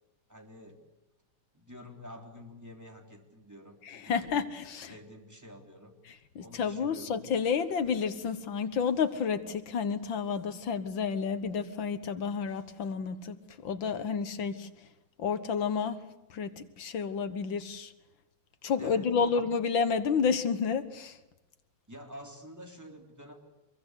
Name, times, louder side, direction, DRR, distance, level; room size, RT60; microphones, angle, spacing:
voice 1, 0.3-0.8 1.5-4.3 4.9-6.0 6.4-7.2 18.8-19.4 21.9-23.3, equal, 10° right, 2 dB, 3.5 m, -48 dB
voice 2, 3.9-4.9 6.4-14.7 15.2-16.0 16.3-17.9 18.6-21.2, left 6 dB, 75° left, 11 dB, 2.1 m, -30 dB
25.0 x 22.5 x 8.1 m, 0.99 s
omnidirectional pair, 2.1 m